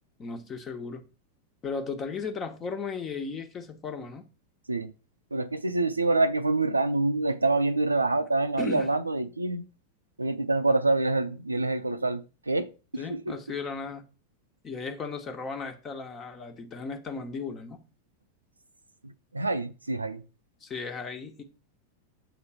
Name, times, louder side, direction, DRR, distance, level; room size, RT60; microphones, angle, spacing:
voice 1, 0.2-1.0 1.6-4.3 8.6-8.9 13.0-14.1 14.6-17.8 20.6-21.4, left 5 dB, 25° left, 1.3 m, -36 dB
voice 2, 5.3-9.7 10.2-13.4 19.0-20.2, right 2 dB, 80° right, 0.6 m, -26 dB
7.8 x 3.9 x 5.7 m
figure-of-eight pair, 90°, 0 cm